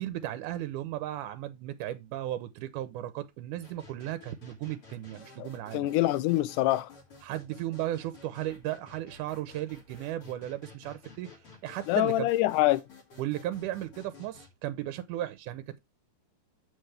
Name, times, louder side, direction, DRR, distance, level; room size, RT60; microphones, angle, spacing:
voice 1, 0.0-5.9 7.2-11.3 11.6-12.3 13.2-15.8, right 13 dB, 90° right, 2.2 m, -35 dB
sound 1, 3.6-14.5, left 3 dB, 45° left, 3.0 m, -53 dB
voice 2, 5.7-6.9 11.9-12.8, left 16 dB, 85° left, 2.1 m, -25 dB
7.8 x 6.1 x 3.4 m
omnidirectional pair, 3.6 m